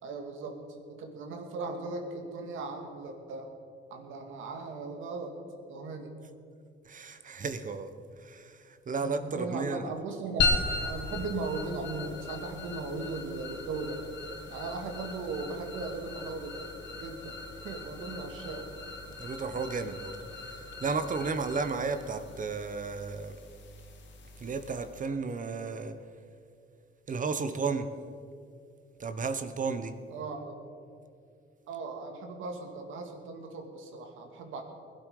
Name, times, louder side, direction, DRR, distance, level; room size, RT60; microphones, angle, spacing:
voice 1, 0.0-0.6 0.9-3.5 3.9-5.4 5.7-6.1 9.0-14.0 14.5-16.6 17.0-17.4 17.6-18.7 30.1-30.6 31.7-34.6, right 3 dB, 85° right, 4 dB, 2.1 m, -38 dB
voice 2, 6.8-7.9 8.2-9.9 19.2-20.2 20.5-23.4 24.4-26.0 27.1-27.9 29.0-30.0, right 4 dB, 40° right, 10 dB, 1.2 m, -33 dB
sound 1, 10.4-25.1, left 3 dB, 65° left, 2.4 m, -37 dB
20.5 x 11.5 x 5.0 m, 2.4 s
cardioid pair, 90°, 20 cm